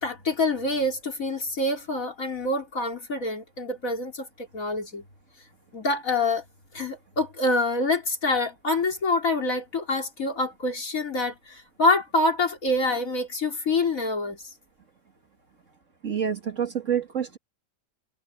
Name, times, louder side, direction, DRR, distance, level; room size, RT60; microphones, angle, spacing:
voice 1, 0.0-5.0 5.7-6.4 6.7-14.4, left 2 dB, 50° left, 3.9 m, -26 dB
voice 2, 16.0-17.4, right 8 dB, 45° right, 2.1 m, -27 dB
omnidirectional pair, 1.8 m